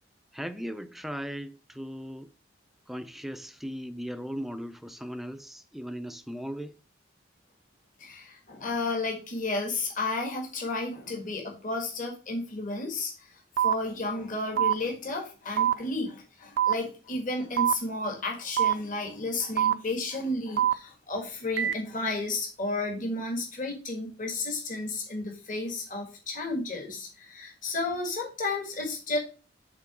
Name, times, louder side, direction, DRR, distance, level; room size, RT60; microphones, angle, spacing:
voice 1, 0.3-2.3 2.9-6.7, equal, ahead, 0.4 m, -37 dB
voice 2, 8.0-29.2, left 2 dB, 45° left, 1.6 m, -32 dB
sound 1, 13.6-13.7 14.6-14.7 15.6-15.7 16.6-16.7 17.6-17.7 18.6-18.7 19.6-19.7 20.6-20.7 21.6-21.7, right 10 dB, 75° right, 0.5 m, -23 dB
5.8 x 3.8 x 6.0 m
head